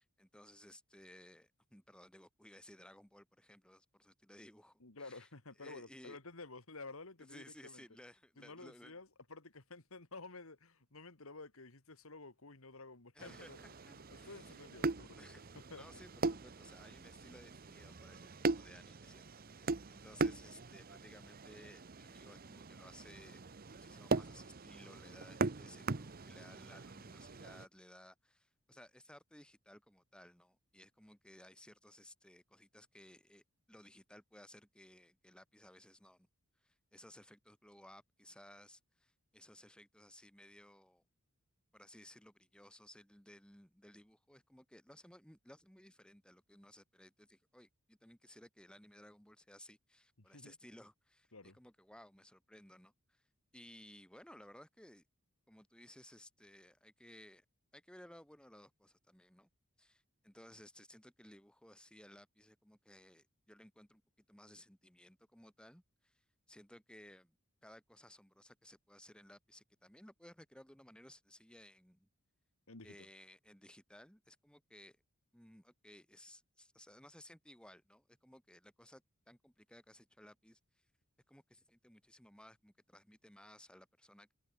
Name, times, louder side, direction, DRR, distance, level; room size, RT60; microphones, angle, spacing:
voice 1, 0.0-5.3 5.6-6.2 7.2-9.0 13.1-14.6 15.1-15.4 15.7-19.2 19.6-23.4 23.7-36.3 36.6-41.0 41.7-53.2 53.5-55.0 55.5-57.4 57.7-59.5 59.8-67.4 67.6-72.1 72.8-75.0 75.3-80.6 81.3-84.3, left 1 dB, 5° left, 3.0 m, -59 dB
voice 2, 4.8-7.8 8.4-13.7 14.1-15.3 15.7-15.8 50.3-50.5 51.3-51.6 72.7-73.1, left 3 dB, 65° left, 2.2 m, -52 dB
sound 1, 13.2-27.7, right 3 dB, 45° right, 0.9 m, -40 dB
head